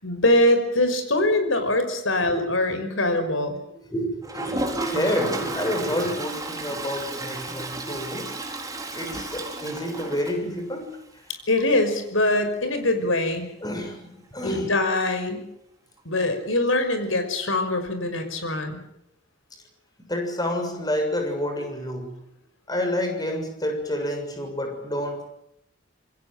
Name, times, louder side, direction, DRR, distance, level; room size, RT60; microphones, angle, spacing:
voice 1, 0.0-3.6 11.5-13.5 14.4-15.4 16.0-18.8, left 1 dB, 75° left, 8 dB, 5.8 m, -23 dB
voice 2, 3.9-8.3 8.9-10.9 13.6-14.0 14.3-14.7 20.1-22.1 22.7-25.2, equal, 20° left, 4 dB, 6.9 m, -28 dB
Toilet flush, 4.2-10.9 11.3-11.4 11.6-11.7 11.9-12.0 14.6-14.7 16.0-16.1, right 2 dB, 20° right, 4.3 m, -33 dB
27.5 x 21.5 x 7.6 m, 0.78 s
head